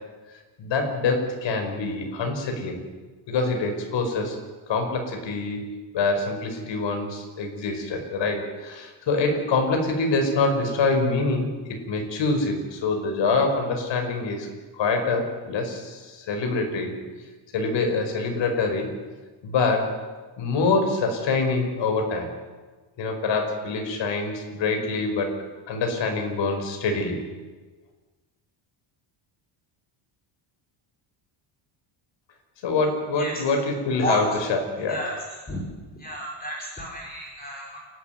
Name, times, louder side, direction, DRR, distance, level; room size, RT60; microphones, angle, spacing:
voice 1, 0.6-2.8 3.3-4.4 4.7-14.5 14.8-16.9 17.5-18.9 19.4-19.9 20.4-22.3 23.0-25.3 25.7-27.2 32.6-35.0, left 3 dB, 60° left, 4 dB, 5.6 m, -25 dB
voice 2, 34.9-35.7 35.9-37.8, equal, 20° left, -3 dB, 4.7 m, -32 dB
29.0 x 12.0 x 9.5 m, 1.3 s
cardioid pair, 155°, 50 cm